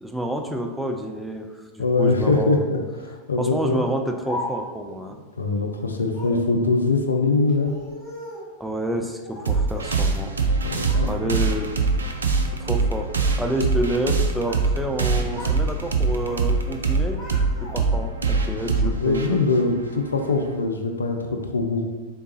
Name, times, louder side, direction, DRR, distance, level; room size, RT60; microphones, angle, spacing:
voice 1, 0.0-2.6 3.4-5.2 8.6-10.3 11.0-11.7 12.6-13.1 13.4-17.2 17.6-19.5, right 1 dB, 5° right, 3 dB, 0.3 m, -29 dB
voice 2, 1.8-3.8 5.4-7.7 10.6-11.1 18.5-21.8, left 3 dB, 75° left, 4 dB, 0.4 m, -23 dB
Speech, 3.8-4.9 6.1-6.5 7.5-8.5 9.2-10.0 10.4-11.1 11.5-11.9 12.5-12.9 14.0-14.7 15.0-15.6 15.9-16.5 16.8-18.1, left 1 dB, 15° left, 1.1 m, -38 dB
sound 1, 9.5-20.5, right 4 dB, 75° right, 0.4 m, -23 dB
3.7 x 3.4 x 2.8 m, 1.3 s
figure-of-eight pair, 90°, 0 cm